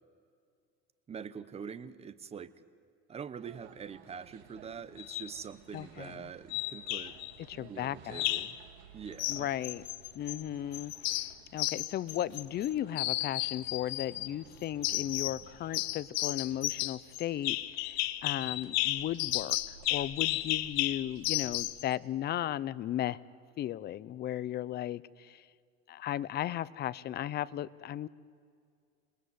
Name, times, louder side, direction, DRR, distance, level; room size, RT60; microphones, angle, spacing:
voice 1, 1.1-2.5 3.1-7.2 7.7-8.6 8.9-9.5, right 6 dB, 20° right, 16 dB, 0.9 m, -44 dB
sound 1, 3.4-21.6, right 7 dB, 85° right, 2.8 m, -57 dB
sound 2, 5.0-5.3 6.5-7.3 8.1-8.6 9.2-10.4 10.7-12.7 13.0-14.3 14.8-15.4 15.7-21.8, left 18 dB, 55° left, 1.1 m, -33 dB
voice 2, 5.7-6.2 7.5-8.2 9.3-9.8 10.1-10.9 11.5-23.2 23.6-25.4 25.9-28.1, left 12 dB, 30° left, 18 dB, 0.7 m, -35 dB
27.0 x 20.5 x 9.5 m, 2.2 s
supercardioid pair, 140°, 31 cm